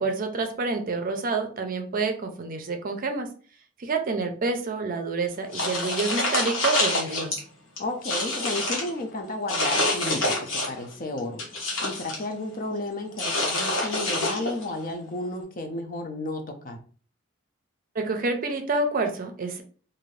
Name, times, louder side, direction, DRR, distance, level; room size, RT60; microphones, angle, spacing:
voice 1, 0.0-3.3 3.8-7.4 18.0-19.6, right 3 dB, 45° right, 6 dB, 0.5 m, -28 dB
sound 1, 5.5-7.4 7.8-8.9 9.5-10.8 11.2-12.2 13.2-14.7, left 2 dB, 75° left, 1.0 m, -27 dB
voice 2, 7.8-11.4 11.8-16.8, left 2 dB, 45° left, 4 dB, 0.5 m, -32 dB
2.6 x 2.5 x 3.1 m, 0.41 s
head